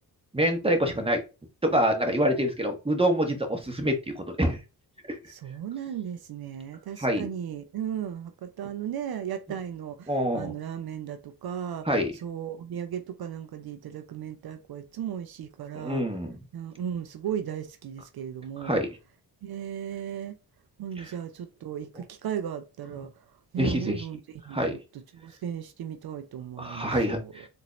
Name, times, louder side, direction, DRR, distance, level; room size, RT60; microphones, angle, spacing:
voice 1, 0.3-1.2 1.6-4.6 5.1-5.2 7.0-7.3 10.1-10.5 11.8-12.1 15.7-16.4 18.6-18.9 21.0-21.1 23.6-24.1 24.5-24.8 26.6-27.5, equal, 15° right, 1.2 m, -26 dB
voice 2, 5.3-11.9 12.2-16.0 16.5-18.8 19.4-20.4 20.8-23.1 23.5-24.2 24.5-24.8 25.2-27.3, right 9 dB, 60° right, 0.6 m, -36 dB
3.9 x 2.7 x 3.0 m
supercardioid pair, 60°, 43 cm